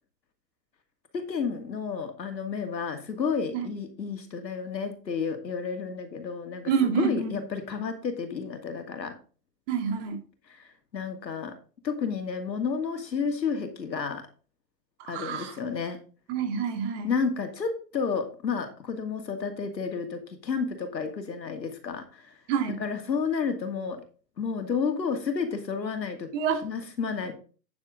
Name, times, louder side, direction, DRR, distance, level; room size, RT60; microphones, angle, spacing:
voice 1, 1.1-9.1 10.5-11.6 11.8-14.3 15.1-16.0 17.0-22.4 22.7-24.0 24.4-26.3 26.6-27.3, left 5 dB, 85° left, 6 dB, 2.4 m, -31 dB
voice 2, 6.7-7.4 9.7-10.2 15.0-15.6 16.3-17.1 22.5-22.8 26.3-26.7, right 7 dB, 45° right, 6 dB, 2.4 m, -27 dB
9.5 x 7.7 x 3.9 m, 0.37 s
hypercardioid pair, 125°, 50 cm